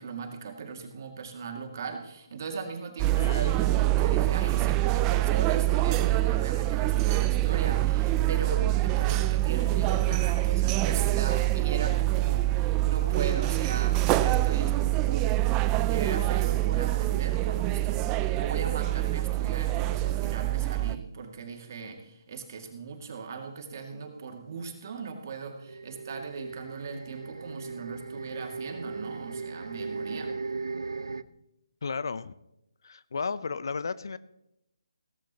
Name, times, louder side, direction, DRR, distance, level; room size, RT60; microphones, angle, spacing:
voice 1, 0.0-15.4 15.9-30.3 31.1-31.2, right 5 dB, 45° right, 4 dB, 2.1 m, -38 dB
sound 1, 3.0-21.0, right 16 dB, 20° right, 0.4 m, -25 dB
voice 2, 3.1-3.7 31.8-32.3 32.8-34.2, left 5 dB, 60° left, 17 dB, 0.6 m, -34 dB
sound 2, 25.7-31.2, right 4 dB, 80° right, 0.5 m, -37 dB
17.0 x 14.0 x 2.9 m, 0.84 s
figure-of-eight pair, 150°, 2 cm